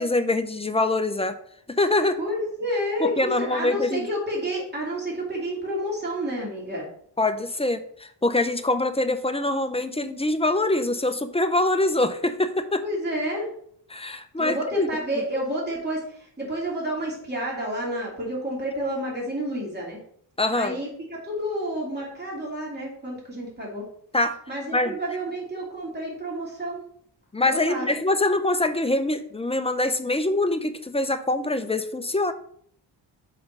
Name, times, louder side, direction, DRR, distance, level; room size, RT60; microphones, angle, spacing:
voice 1, 0.0-1.4 1.7-2.2 3.0-4.1 7.2-12.8 13.9-14.9 15.2-15.3 20.4-20.8 24.1-24.4 24.7-24.9 27.3-32.3, left 2 dB, 15° left, 9 dB, 0.5 m, -24 dB
voice 2, 2.2-6.9 12.8-13.5 14.4-20.0 20.5-23.8 24.5-26.8 27.5-27.9, equal, 25° right, -4 dB, 3.0 m, -30 dB
5.8 x 4.2 x 5.3 m, 0.63 s
cardioid pair, 90°, 43 cm